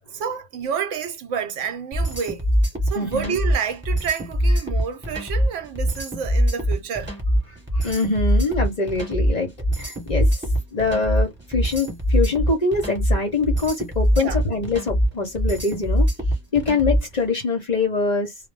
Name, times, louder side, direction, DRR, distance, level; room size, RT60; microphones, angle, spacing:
voice 1, 0.1-2.4 2.9-7.1 14.2-14.4, right 7 dB, 85° right, 1.0 m, -29 dB
sound 1, 1.9-17.2, equal, 10° right, 1.0 m, -22 dB
voice 2, 2.9-3.4 7.5-9.5 9.8-10.4 10.7-16.1 16.5-18.3, left 3 dB, 45° left, 0.6 m, -24 dB
2.1 x 2.0 x 3.1 m
omnidirectional pair, 1.2 m